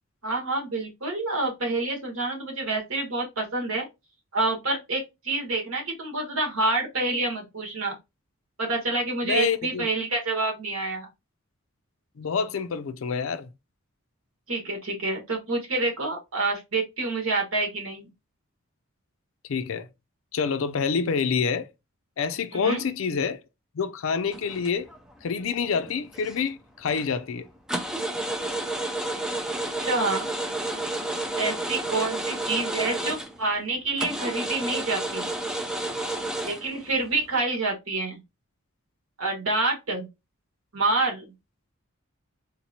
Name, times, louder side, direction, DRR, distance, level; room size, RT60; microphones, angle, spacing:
voice 1, 0.2-3.9 4.3-7.9 8.6-11.1 14.5-18.1 22.5-22.8 29.8-30.3 31.4-35.3 36.4-38.2 39.2-40.1 40.7-41.3, right 2 dB, 85° right, 1.4 m, -27 dB
voice 2, 9.2-9.9 12.2-13.5 19.5-19.9 20.3-21.7 22.2-23.4 23.7-24.9 25.2-27.5, left 6 dB, 75° left, 0.4 m, -27 dB
sound 1, 24.3-25.1 25.5-26.5 26.9-27.1 27.7-33.5 34.0-37.3, right 1 dB, 5° right, 0.4 m, -31 dB
3.9 x 3.0 x 2.7 m
head